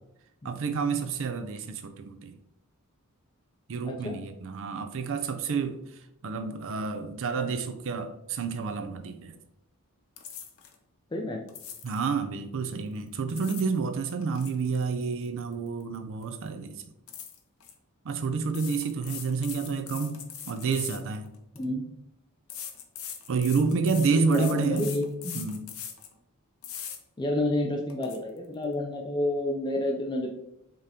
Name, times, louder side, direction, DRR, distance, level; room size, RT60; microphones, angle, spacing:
voice 1, 0.4-2.3 3.7-5.8 6.2-9.4 11.8-16.8 18.0-21.3 23.3-25.0 25.3-25.7, right 4 dB, 60° right, 9 dB, 0.5 m, -29 dB
voice 2, 3.8-4.2 11.1-11.4 21.5-21.8 24.1-25.4 27.2-30.3, left 1 dB, 20° left, 0 dB, 0.4 m, -29 dB
sound 1, 10.2-10.7 11.5-12.0 13.1-13.8 14.1-16.0 16.2-16.5 17.1-17.7 18.5-21.6 22.5-26.1 26.6-27.0 27.5-27.6 27.9-28.2, left 8 dB, 65° left, 0.7 m, -41 dB
5.0 x 3.7 x 2.8 m, 0.84 s
head